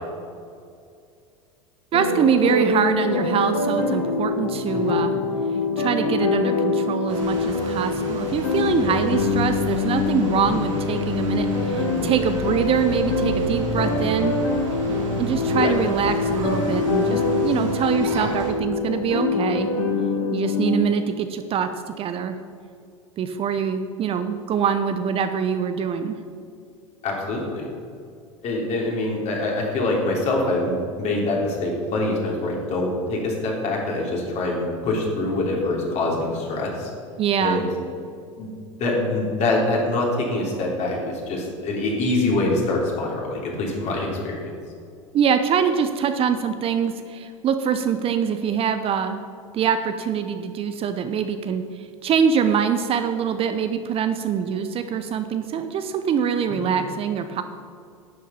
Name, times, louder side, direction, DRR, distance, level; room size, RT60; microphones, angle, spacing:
sound 1, 1.9-20.8, left 3 dB, 70° left, 1.7 m, -24 dB
voice 1, 1.9-5.1 5.8-14.4 15.2-19.7 20.3-21.7 22.0-22.4 23.2-26.2 37.2-37.7 45.1-49.2 49.5-51.6 52.0-57.4, right 7 dB, 35° right, 9 dB, 0.7 m, -24 dB
sound 2, 7.1-18.5, right 3 dB, 70° right, 2.8 m, -32 dB
voice 2, 27.0-27.6 28.4-36.9 37.4-37.7 38.4-38.5 38.8-44.5 56.5-56.7, left 2 dB, 45° left, -2 dB, 3.2 m, -25 dB
11.5 x 7.5 x 5.6 m, 2.3 s
hypercardioid pair, 85°, 17 cm